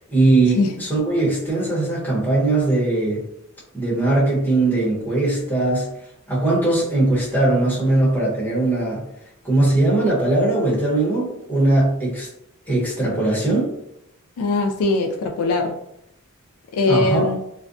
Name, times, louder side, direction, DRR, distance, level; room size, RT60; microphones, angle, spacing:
voice 1, 0.1-3.2 3.7-5.9 6.3-9.0 9.4-12.3 12.7-13.8 16.9-17.3, right 2 dB, 10° left, -8 dB, 0.9 m, -20 dB
voice 2, 14.4-15.8 16.7-17.4, left 3 dB, 80° left, 4 dB, 0.3 m, -21 dB
2.5 x 2.1 x 2.5 m, 0.80 s
head